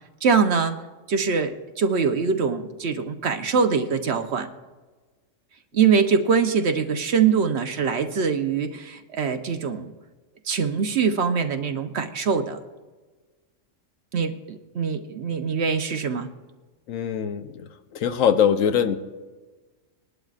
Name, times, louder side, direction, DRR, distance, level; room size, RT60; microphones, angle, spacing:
voice 1, 0.2-0.8 1.1-4.5 5.7-9.9 10.5-12.6 14.1-16.3, right 6 dB, 60° right, 7 dB, 1.0 m, -23 dB
voice 2, 16.9-19.0, left 8 dB, 80° left, 10 dB, 1.1 m, -22 dB
21.0 x 11.5 x 2.4 m, 1.3 s
omnidirectional pair, 1.4 m